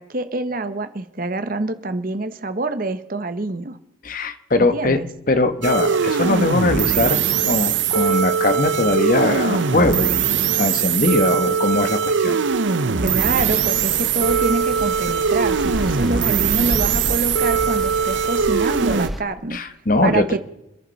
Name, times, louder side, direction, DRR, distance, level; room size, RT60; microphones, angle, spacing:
voice 1, 0.0-3.8 4.6-5.1 13.0-19.6 20.0-20.4, right 2 dB, 45° right, 10 dB, 1.0 m, -26 dB
voice 2, 4.0-5.0 5.3-10.2 10.5-12.4 19.5-20.3, left 2 dB, 45° left, 9 dB, 1.1 m, -20 dB
sound 1, 5.6-19.1, right 6 dB, 70° right, 0.8 m, -21 dB
sound 2, 13.2-19.2, equal, ahead, 0.8 m, -31 dB
27.5 x 11.0 x 4.1 m, 0.91 s
head